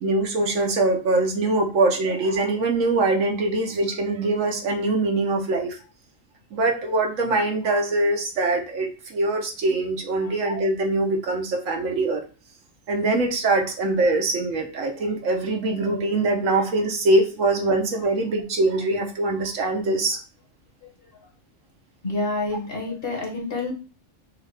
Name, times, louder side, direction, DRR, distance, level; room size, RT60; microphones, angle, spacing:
voice 1, 0.0-5.8 6.5-12.2 12.9-20.2, right 2 dB, 80° right, 2 dB, 1.3 m, -23 dB
voice 2, 22.0-23.7, left 2 dB, 45° left, 0 dB, 1.6 m, -28 dB
6.3 x 2.5 x 3.3 m, 0.35 s
omnidirectional pair, 1.3 m